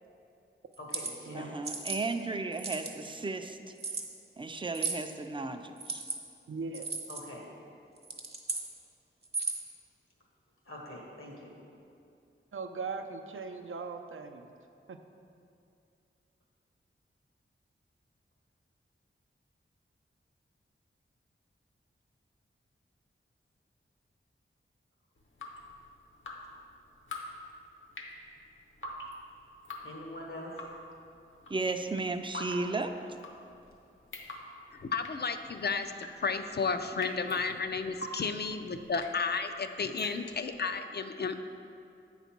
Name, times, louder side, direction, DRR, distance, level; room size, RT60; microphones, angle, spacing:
sound 1, 0.7-1.1 1.6-2.0 2.5-3.1 3.8-4.0 4.7-5.0 5.8-6.2 6.7-7.2 8.0-8.7 9.2-9.7, right 4 dB, 50° right, 0.9 m, -35 dB
voice 1, 0.8-1.6 7.1-7.5 10.7-11.5 29.8-30.6, left 1 dB, 80° left, -2 dB, 1.5 m, -44 dB
voice 2, 1.3-3.6 4.4-6.0 31.5-32.9, right 3 dB, 25° right, 7 dB, 0.4 m, -34 dB
voice 3, 6.5-7.0 12.5-14.5 14.9-15.0, right 4 dB, 75° right, 6 dB, 0.5 m, -39 dB
Drip, 25.2-40.6, left 1 dB, 65° left, 0.8 m, -46 dB
voice 4, 34.7-41.4, left 5 dB, 50° left, 8 dB, 0.4 m, -33 dB
8.3 x 4.0 x 5.9 m, 2.6 s
wide cardioid pair, 70°, 21 cm